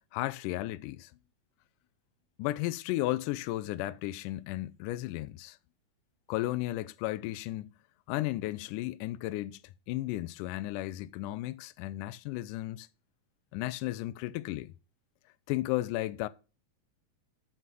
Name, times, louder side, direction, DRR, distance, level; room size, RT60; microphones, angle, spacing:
voice 1, 0.1-1.1 2.4-5.6 6.3-7.7 8.1-9.6 9.9-12.9 13.5-14.7 15.5-16.3, left 17 dB, 85° left, 2.1 m, -34 dB
6.2 x 5.4 x 6.0 m
omnidirectional pair, 3.8 m